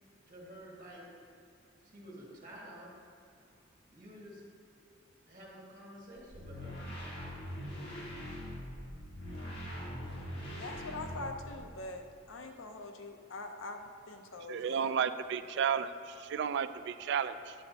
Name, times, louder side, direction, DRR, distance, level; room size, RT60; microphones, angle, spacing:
voice 1, 0.3-1.1 1.8-2.9 3.9-4.4 5.3-6.8, equal, 45° right, -5 dB, 1.8 m, -50 dB
sound 1, 6.2-11.7, equal, 60° left, 1.8 m, -42 dB
voice 2, 10.5-14.9, left 2 dB, 80° left, 5 dB, 0.7 m, -44 dB
voice 3, 14.5-17.5, right 7 dB, 60° right, 12 dB, 0.3 m, -33 dB
9.4 x 7.7 x 2.8 m, 2.6 s
head